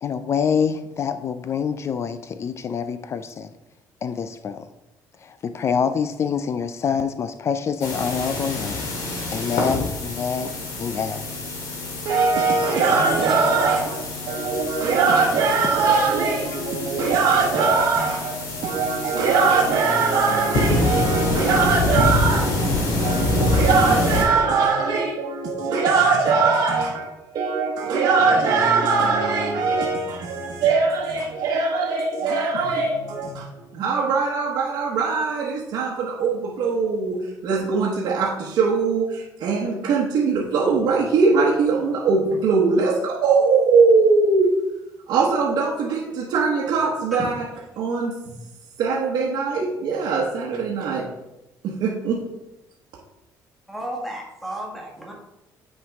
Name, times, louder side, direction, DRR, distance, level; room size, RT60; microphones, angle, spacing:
voice 1, 0.0-3.5 4.0-4.7 5.2-8.9 9.3-11.2 12.6-13.1 15.6-15.9, left 6 dB, 40° left, 10 dB, 0.4 m, -26 dB
sound 1, 7.8-24.2, left 2 dB, 85° left, 2.1 m, -26 dB
voice 2, 12.0-37.2 37.4-44.5 45.1-47.4 47.8-48.3 48.8-51.0 51.6-52.2, right 4 dB, 70° right, -4 dB, 1.1 m, -21 dB
voice 3, 12.9-13.4 47.1-47.3 53.7-55.1, right 1 dB, ahead, -2 dB, 1.7 m, -32 dB
8.9 x 4.6 x 3.5 m, 0.93 s
cardioid pair, 130°, 7 cm